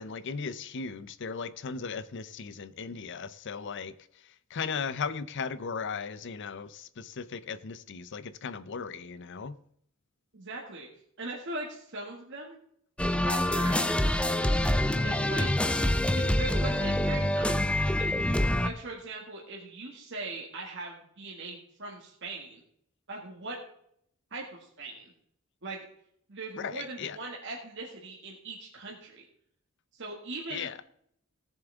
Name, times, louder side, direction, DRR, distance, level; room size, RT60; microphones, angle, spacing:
voice 1, 0.0-3.9 4.2-9.6 26.6-27.2 30.5-30.8, left 5 dB, 55° left, 0.6 m, -37 dB
voice 2, 10.3-10.9 11.2-12.6 13.2-13.9 15.0-15.5 16.1-18.3 18.6-22.6 23.1-23.6 24.3-25.0 25.6-25.9 26.3-29.2 29.9-30.8, right 2 dB, 60° right, 2.1 m, -40 dB
sound 1, 13.0-18.7, left 1 dB, 5° left, 0.5 m, -26 dB
18.0 x 7.3 x 3.5 m
head